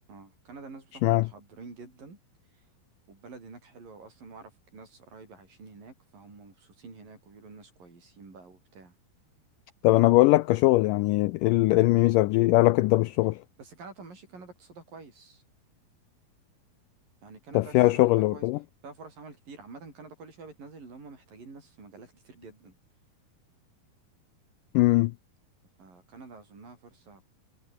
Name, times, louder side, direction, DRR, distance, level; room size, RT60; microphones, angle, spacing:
voice 1, 0.1-2.2 2.5-2.6 3.1-8.9 13.6-15.4 17.2-18.5 18.8-22.8 25.8-27.3, right 4 dB, 60° right, 8.9 m, -48 dB
voice 2, 9.8-13.4 17.5-18.6 24.7-25.1, left 19 dB, 85° left, 1.9 m, -21 dB
omnidirectional pair, 4.4 m